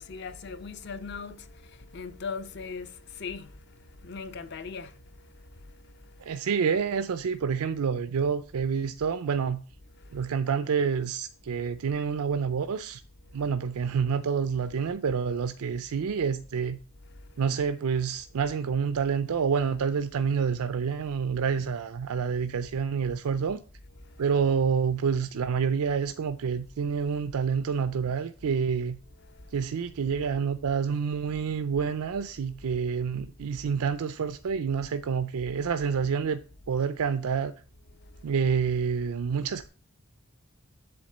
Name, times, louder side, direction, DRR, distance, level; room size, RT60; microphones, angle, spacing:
voice 1, 0.0-3.5 4.0-4.9, left 5 dB, 50° left, 0.6 m, -39 dB
voice 2, 6.2-9.6 10.1-13.0 13.3-16.8 17.4-23.6 24.2-29.0 29.5-36.4 36.7-37.5 38.2-39.7, right 6 dB, 90° right, 0.4 m, -28 dB
8.0 x 3.6 x 6.6 m
head